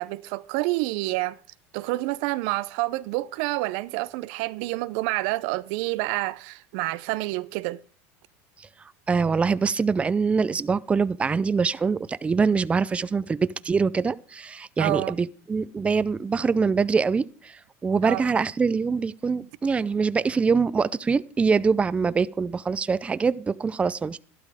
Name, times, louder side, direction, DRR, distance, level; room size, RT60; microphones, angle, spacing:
voice 1, 0.0-1.4 1.7-7.8 14.8-15.2 18.0-18.2, right 20 dB, 70° right, 0.6 m, -28 dB
voice 2, 9.1-24.2, right 5 dB, 15° right, 0.5 m, -24 dB
12.0 x 12.0 x 4.9 m
supercardioid pair, 110°, 7 cm